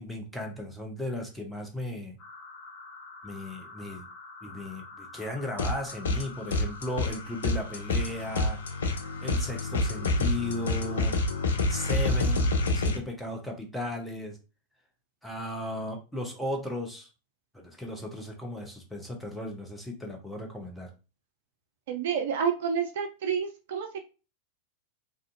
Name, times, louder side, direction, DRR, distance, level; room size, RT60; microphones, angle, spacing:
voice 1, 0.0-2.2 3.2-4.1 4.4-8.6 9.2-11.2 11.7-14.4 15.2-17.1 17.5-20.9, left 1 dB, ahead, 0 dB, 0.7 m, -36 dB
sound 1, 2.2-12.7, left 3 dB, 35° left, 1.1 m, -47 dB
sound 2, 5.6-6.2 6.5-13.0, left 2 dB, 65° left, 0.5 m, -28 dB
voice 2, 21.9-24.0, right 7 dB, 55° right, 4 dB, 0.4 m, -29 dB
2.5 x 2.3 x 2.6 m, 0.31 s
figure-of-eight pair, 90°, 0 cm